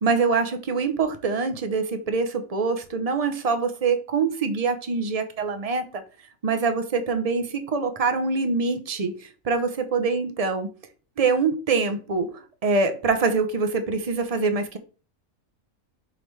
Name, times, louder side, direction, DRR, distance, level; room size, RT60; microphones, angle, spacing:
voice 1, 0.0-6.0 6.4-10.7 11.2-14.8, right 4 dB, 35° right, 7 dB, 0.7 m, -24 dB
5.8 x 5.0 x 3.3 m, 0.37 s
omnidirectional pair, 1.5 m